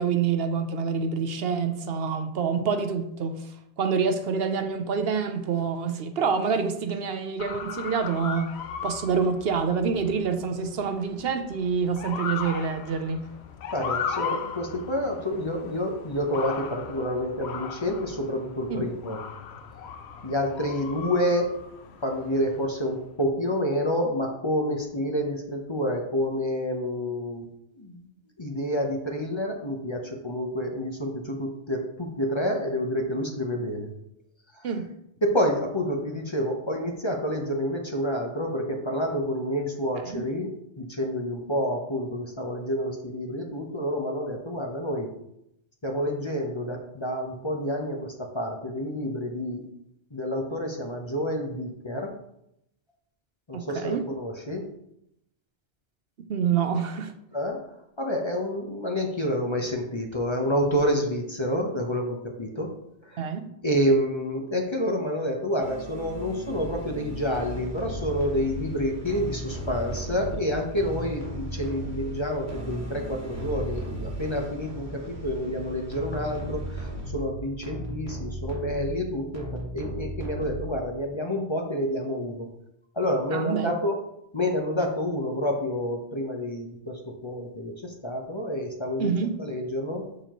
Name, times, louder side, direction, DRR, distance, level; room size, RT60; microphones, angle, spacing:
voice 1, 0.0-13.3 18.7-18.9 34.6-34.9 40.0-40.2 53.5-54.1 56.3-57.1 63.2-63.5 83.3-83.7 89.0-89.4, right 6 dB, 65° right, 0.8 m, -27 dB
Motor vehicle (road) / Siren, 7.4-23.0, left 6 dB, 70° left, 0.9 m, -37 dB
voice 2, 13.7-19.2 20.2-21.5 22.0-27.5 27.7-28.1 28.4-33.9 34.5-34.6 35.2-45.1 45.8-49.6 50.1-52.1 53.5-54.7 57.3-57.6 58.0-62.7 63.0-63.2 63.6-82.5 82.9-84.0 84.3-89.1 89.4-90.0, equal, 25° left, 0.9 m, -28 dB
sound 1, 65.6-81.0, right 1 dB, 45° right, 1.4 m, -36 dB
7.0 x 6.6 x 3.0 m
omnidirectional pair, 1.1 m